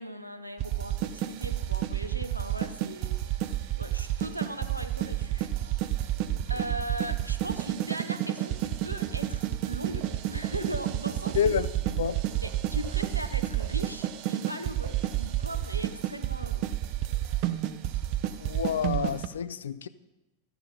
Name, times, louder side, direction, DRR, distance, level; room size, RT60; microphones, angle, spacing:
voice 1, 0.0-3.4 3.8-5.9 6.5-11.5 12.4-16.6, right 1 dB, 85° right, 1.0 m, -39 dB
sound 1, 0.6-19.3, right 13 dB, 45° right, 0.8 m, -30 dB
voice 2, 11.3-12.2 18.4-19.9, left 8 dB, 65° left, 0.6 m, -29 dB
13.0 x 10.5 x 5.5 m
figure-of-eight pair, 90°, 0 cm